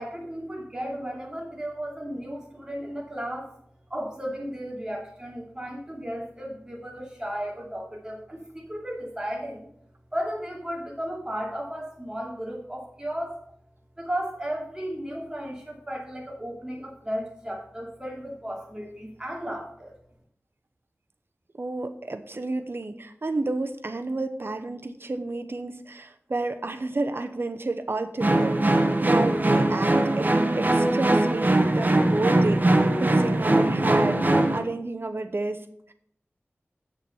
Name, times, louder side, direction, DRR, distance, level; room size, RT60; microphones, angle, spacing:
voice 1, 0.0-3.5 3.9-9.7 10.1-13.4 14.0-19.9, equal, 15° right, -2 dB, 2.6 m, -34 dB
voice 2, 21.6-35.9, right 2 dB, 55° right, 8 dB, 0.8 m, -31 dB
sound 1, 28.2-34.6, right 1 dB, 40° right, 1.1 m, -21 dB
7.9 x 6.6 x 5.5 m, 0.69 s
wide cardioid pair, 65°, 5 cm